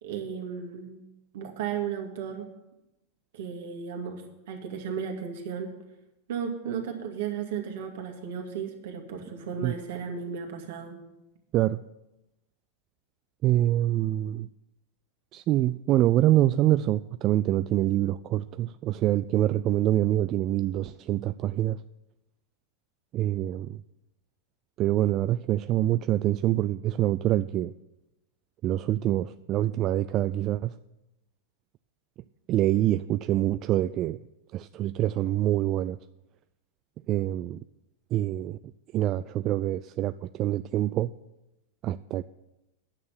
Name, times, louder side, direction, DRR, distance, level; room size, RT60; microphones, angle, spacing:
voice 1, 0.0-1.0 1.3-2.5 3.3-5.7 6.3-11.0, right 7 dB, 70° right, 3 dB, 2.1 m, -34 dB
voice 2, 13.4-14.5 15.3-21.8 23.1-23.8 24.8-27.7 28.6-30.8 32.5-34.2 34.5-36.0 37.1-37.6 38.1-38.6 38.9-41.1 41.8-42.2, right 13 dB, 40° right, 13 dB, 0.3 m, -25 dB
9.8 x 6.4 x 8.9 m, 0.95 s
hypercardioid pair, 100°, 0 cm